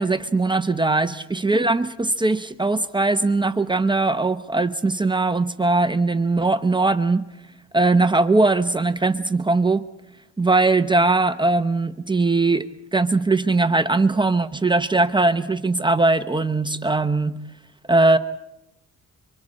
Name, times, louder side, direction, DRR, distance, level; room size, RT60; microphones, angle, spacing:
voice 1, 0.0-7.2 7.7-9.9 10.4-17.4 17.9-18.2, right 3 dB, 15° right, 9 dB, 0.9 m, -20 dB
26.0 x 24.5 x 4.3 m, 0.89 s
cardioid pair, 90°, 30 cm